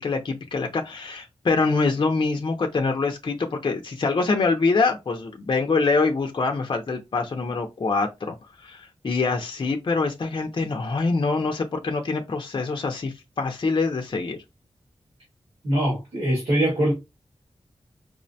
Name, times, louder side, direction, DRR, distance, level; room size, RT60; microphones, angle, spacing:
voice 1, 0.0-14.4, left 4 dB, 45° left, 0.5 m, -25 dB
voice 2, 15.6-16.9, right 1 dB, 80° right, 1.7 m, -22 dB
4.7 x 2.1 x 2.6 m
wide cardioid pair, 120°, 11 cm